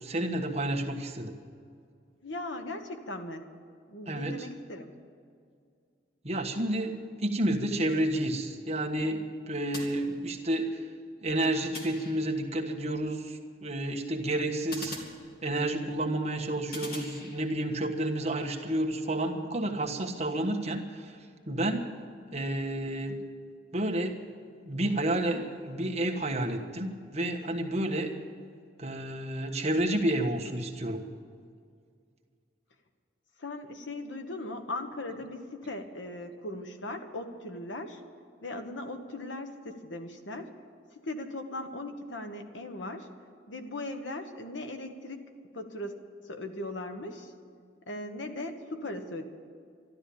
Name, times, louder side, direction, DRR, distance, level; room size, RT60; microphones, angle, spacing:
voice 1, 0.0-1.3 4.1-4.5 6.2-10.8 11.2-15.0 15.4-21.2 21.5-21.9 22.3-23.2 23.7-24.1 24.6-28.1 28.8-31.0, right 1 dB, 35° right, 2 dB, 1.4 m, -30 dB
voice 2, 2.2-3.5 3.9-4.9 33.4-38.0 38.4-40.5 41.0-43.1 43.5-45.2 45.5-45.9 46.2-47.3 47.9-49.2, left 2 dB, 85° left, 6 dB, 1.4 m, -38 dB
sound 1, 9.7-10.7 11.7-12.6 14.7-15.8 16.7-17.8, left 2 dB, 55° left, 2.4 m, -44 dB
12.5 x 12.5 x 8.6 m, 2.2 s
head